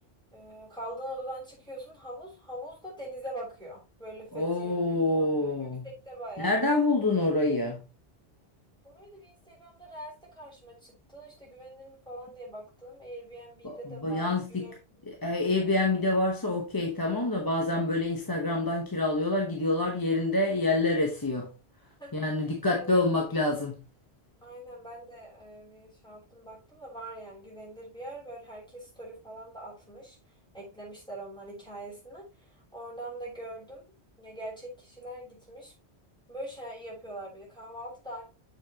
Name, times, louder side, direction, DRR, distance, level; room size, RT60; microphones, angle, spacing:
voice 1, 0.3-4.9 5.2-5.5 5.8-6.6 8.8-14.8 22.0-22.2 22.6-23.1 24.4-30.2 30.5-33.9 34.2-35.7 36.3-38.2, right 1 dB, 5° left, 3.3 m, -43 dB
voice 2, 4.3-5.9 6.4-7.8 13.6-14.7 15.1-21.5 22.1-23.7, left 2 dB, 20° left, 0.9 m, -27 dB
7.2 x 6.0 x 2.8 m
omnidirectional pair, 1.1 m